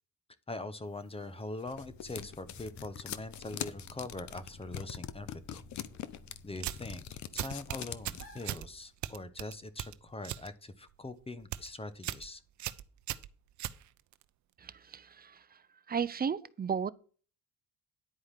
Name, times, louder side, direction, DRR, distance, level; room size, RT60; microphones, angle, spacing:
voice 1, 0.5-5.6 6.4-12.4, left 2 dB, 20° left, 1.1 m, -42 dB
sound 1, 1.2-8.5, left 11 dB, 65° left, 0.9 m, -42 dB
sound 2, 1.7-9.2, left 2 dB, 45° left, 3.3 m, -54 dB
sound 3, 6.6-7.0 7.4-8.7 9.0-10.5 10.8-11.1 11.4-11.7 12.0-12.3 12.6-14.2, right 13 dB, 60° right, 0.7 m, -38 dB
voice 2, 14.6-15.4 15.9-16.9, right 6 dB, 30° right, 0.7 m, -34 dB
10.5 x 4.8 x 7.4 m
cardioid pair, 90°, 32 cm